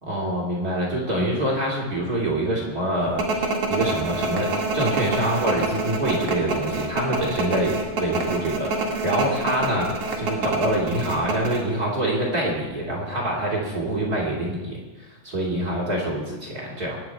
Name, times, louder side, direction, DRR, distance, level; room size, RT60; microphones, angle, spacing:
voice 1, 0.0-17.0, right 1 dB, 30° right, -2 dB, 2.8 m, -26 dB
sound 1, 3.2-11.6, right 3 dB, 50° right, 2.7 m, -26 dB
23.0 x 9.6 x 4.6 m, 1.2 s
omnidirectional pair, 3.9 m